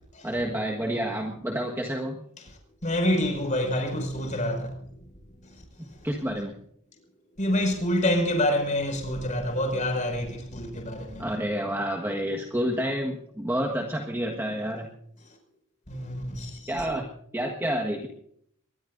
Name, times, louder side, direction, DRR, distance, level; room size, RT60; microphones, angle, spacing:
voice 1, 0.2-2.2 6.0-6.5 11.2-14.9 16.7-18.1, equal, 10° right, 1.5 m, -29 dB
voice 2, 2.8-4.7 5.4-5.6 7.4-11.2 15.9-16.7, left 1 dB, 35° left, 5.7 m, -27 dB
23.0 x 20.5 x 2.6 m
head